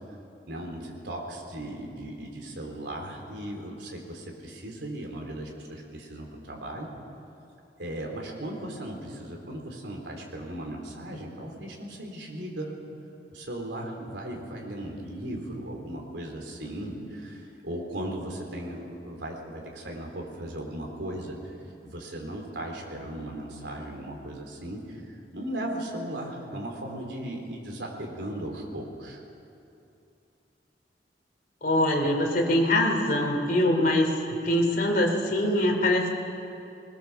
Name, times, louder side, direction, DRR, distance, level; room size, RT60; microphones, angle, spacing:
voice 1, 0.5-6.9 7.8-12.8 13.3-21.5 21.8-29.2, right 1 dB, 90° right, 1 dB, 3.7 m, -37 dB
voice 2, 31.6-34.1 34.4-36.1, left 1 dB, 55° left, 1 dB, 3.0 m, -23 dB
21.5 x 20.5 x 7.0 m, 2.7 s
head